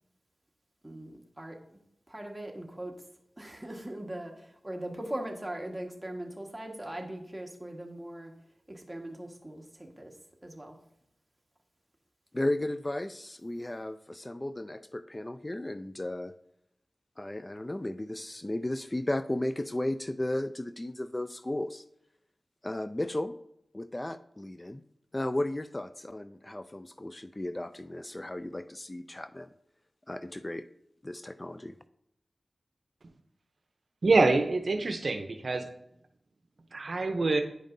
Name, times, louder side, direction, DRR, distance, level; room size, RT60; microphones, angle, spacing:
voice 1, 0.8-1.6 2.1-2.9 3.4-8.3 8.7-10.1 10.4-10.8, right 1 dB, 15° right, 1 dB, 1.4 m, -40 dB
voice 2, 12.3-16.3 17.2-21.8 22.6-23.4 23.7-24.8 25.1-29.5 30.1-30.6 31.0-31.8, left 1 dB, 30° left, 12 dB, 0.3 m, -34 dB
voice 3, 34.0-35.7 36.7-37.4, right 3 dB, 70° right, 6 dB, 0.6 m, -25 dB
9.9 x 5.2 x 2.6 m, 0.79 s
cardioid pair, 40°, 0 cm